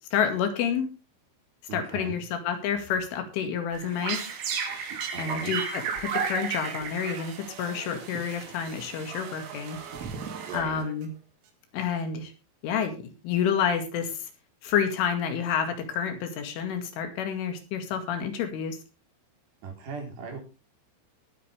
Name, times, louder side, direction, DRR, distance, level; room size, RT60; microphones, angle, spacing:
voice 1, 0.1-0.9 1.7-4.2 5.2-9.8 10.5-11.1 11.7-12.3 12.6-14.3 14.6-18.8, left 7 dB, 80° left, 7 dB, 4.6 m, -29 dB
voice 2, 1.7-2.2 5.1-5.5 10.4-10.8 19.6-20.4, right 4 dB, 60° right, 2 dB, 6.1 m, -37 dB
sound 1, 3.7-11.0, right 6 dB, 85° right, 5.0 m, -34 dB
20.5 x 8.7 x 3.5 m, 0.28 s
omnidirectional pair, 5.6 m